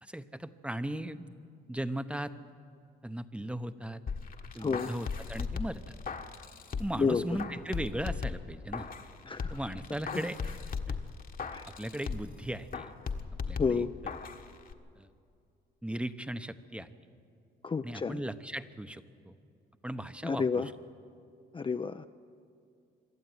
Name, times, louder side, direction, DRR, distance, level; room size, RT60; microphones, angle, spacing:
voice 1, 0.0-1.3 1.7-2.3 3.0-4.0 4.5-5.9 6.8-8.9 9.5-10.4 10.9-11.0 11.8-12.9 13.5-13.8 15.0-15.1 15.8-16.9 17.8-19.3 19.8-20.6, right 1 dB, 5° right, 11 dB, 0.9 m, -37 dB
sound 1, 4.1-7.1 7.4-9.1 9.4-12.4 12.7-14.4 14.7-14.8, left 5 dB, 45° left, 1.4 m, -37 dB
voice 2, 4.6-4.9 7.0-7.3 9.2-9.6 11.5-11.6 13.6-13.9 17.6-18.2 20.2-20.7 21.5-22.3, left 5 dB, 25° left, 8 dB, 0.6 m, -30 dB
24.5 x 12.5 x 9.7 m, 2.4 s
cardioid pair, 90°, 20 cm